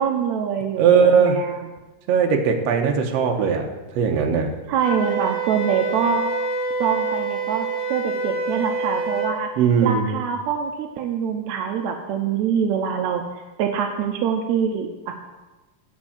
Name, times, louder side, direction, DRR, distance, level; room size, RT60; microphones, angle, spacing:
voice 1, 0.0-1.8 4.7-6.2 6.8-9.5 9.8-13.2 13.6-15.1, right 7 dB, 85° right, 4 dB, 1.6 m, -24 dB
voice 2, 0.8-1.4 2.1-3.7 3.9-4.5 9.6-10.1, right 6 dB, 70° right, 3 dB, 1.6 m, -18 dB
Wind instrument woodwind instrument, 4.8-9.4, right 3 dB, 35° right, 1.0 m, -26 dB
8.9 x 5.4 x 7.2 m, 1.2 s
omnidirectional pair, 4.0 m